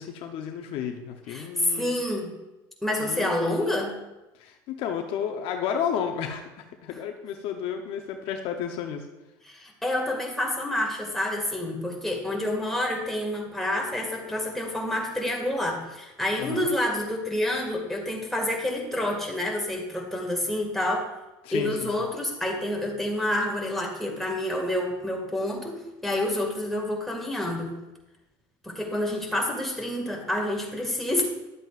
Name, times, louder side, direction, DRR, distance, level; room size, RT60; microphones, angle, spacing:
voice 1, 0.0-2.0 3.0-3.8 4.4-9.0 16.4-16.7 21.4-21.9, left 8 dB, 60° left, 4 dB, 0.8 m, -32 dB
voice 2, 1.3-2.3 2.8-3.9 9.5-21.1 21.5-27.7 28.6-31.2, left 1 dB, 5° left, 0 dB, 2.0 m, -28 dB
11.0 x 7.8 x 2.5 m, 1.0 s
supercardioid pair, 100°, 11 cm